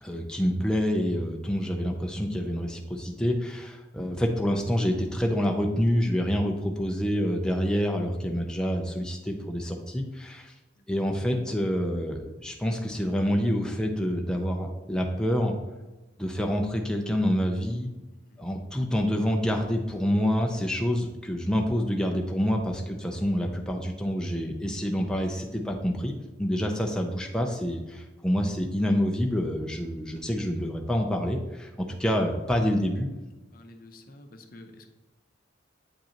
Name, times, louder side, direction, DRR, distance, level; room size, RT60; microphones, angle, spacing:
voice 1, 0.0-10.5 10.9-15.5 16.2-17.9 18.4-26.1 26.4-33.1, equal, 5° left, 1 dB, 0.5 m, -27 dB
voice 2, 10.8-11.2 18.3-18.5 32.7-32.8 33.5-34.9, left 1 dB, 45° left, 5 dB, 0.7 m, -50 dB
8.2 x 5.2 x 2.9 m, 1.1 s
head